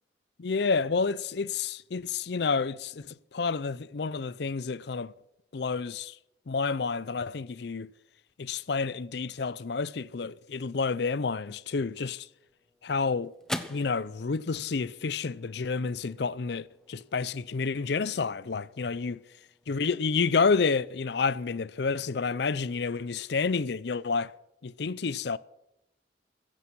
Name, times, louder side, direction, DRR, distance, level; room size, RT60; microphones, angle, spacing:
voice 1, 0.4-5.1 5.5-6.2 6.5-7.9 8.4-12.3 12.8-13.3 13.7-19.2 19.7-24.3 24.6-25.4, left 4 dB, 60° left, 0.5 m, -29 dB
sound 1, 12.2-20.8, left 1 dB, 5° left, 0.8 m, -45 dB
15.5 x 15.0 x 6.0 m
head